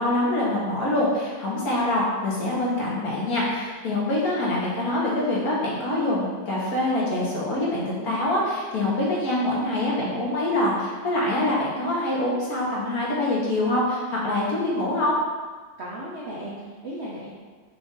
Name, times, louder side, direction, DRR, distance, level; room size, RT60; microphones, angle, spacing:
voice 1, 0.0-15.2, left 1 dB, 60° left, -5 dB, 1.4 m, -25 dB
voice 2, 15.8-17.3, right 1 dB, 65° right, -6 dB, 0.6 m, -35 dB
5.2 x 2.5 x 3.8 m, 1.5 s
omnidirectional pair, 2.0 m